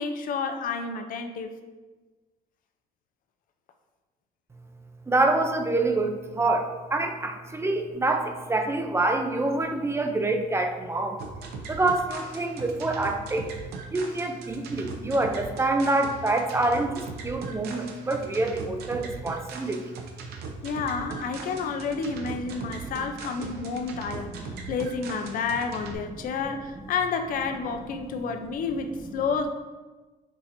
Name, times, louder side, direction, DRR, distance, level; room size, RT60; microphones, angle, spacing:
voice 1, 0.0-1.5 20.6-29.5, left 5 dB, 55° left, 6 dB, 0.5 m, -30 dB
voice 2, 5.1-6.6 6.9-8.2 8.5-11.1 11.7-13.4 13.9-16.9 17.2-19.7, right 2 dB, 15° right, 5 dB, 0.4 m, -26 dB
sound 1, 11.2-25.9, right 4 dB, 70° right, 0.6 m, -40 dB
6.1 x 2.8 x 2.6 m, 1.3 s
cardioid pair, 110°, 17 cm